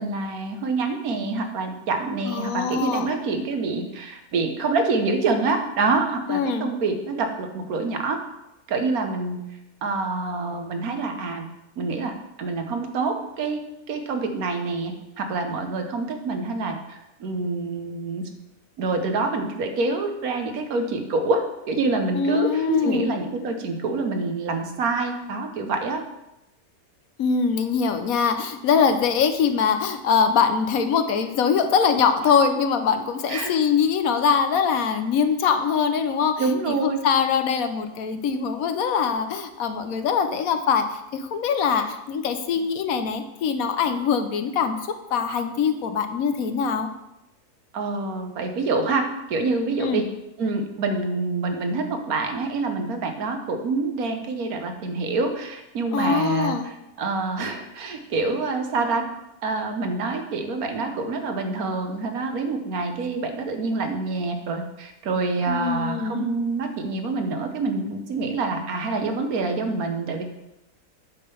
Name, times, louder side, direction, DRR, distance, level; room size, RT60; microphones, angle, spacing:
voice 1, 0.0-8.2 8.7-9.4 9.8-11.5 11.8-13.6 13.9-18.2 18.8-26.0 33.3-33.5 36.4-37.0 41.7-41.8 47.7-50.0 50.4-59.0 59.4-70.2, right 3 dB, 75° right, 5 dB, 1.4 m, -26 dB
voice 2, 2.2-3.1 6.3-6.7 22.1-23.1 27.2-44.8 45.1-46.9 49.8-50.0 55.9-56.7 65.5-66.3, left 6 dB, 70° left, 8 dB, 1.1 m, -23 dB
sound 1, 22.7-26.1, right 2 dB, 50° right, 1.5 m, -34 dB
8.5 x 3.8 x 6.8 m, 0.90 s
omnidirectional pair, 1.6 m